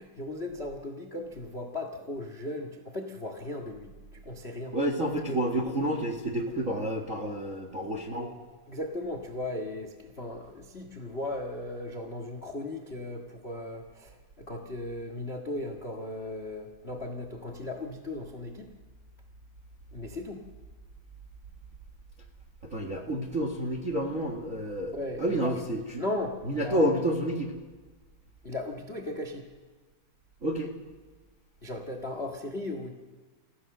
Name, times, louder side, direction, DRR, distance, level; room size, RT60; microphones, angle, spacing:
voice 1, 0.0-4.8 5.2-5.4 8.7-18.7 19.9-20.4 24.9-25.5 26.0-27.0 28.4-29.5 31.6-32.9, left 2 dB, 60° left, 5 dB, 0.6 m, -37 dB
voice 2, 4.7-8.3 22.6-26.0 26.5-27.5 30.4-30.7, right 1 dB, 45° right, 2 dB, 1.0 m, -29 dB
29.0 x 15.5 x 6.7 m, 1.3 s
omnidirectional pair, 4.3 m